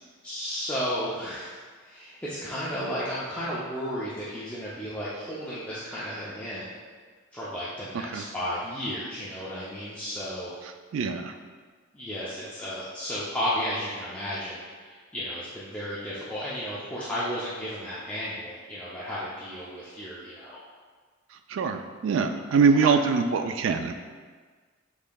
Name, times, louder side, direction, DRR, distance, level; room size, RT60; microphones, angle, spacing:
voice 1, 0.2-6.7 7.3-10.6 11.9-20.6 22.7-22.9, equal, 5° left, -10 dB, 0.5 m, -33 dB
voice 2, 10.9-11.3 21.5-23.9, right 5 dB, 70° right, 7 dB, 0.3 m, -23 dB
5.3 x 3.6 x 2.3 m, 1.5 s
head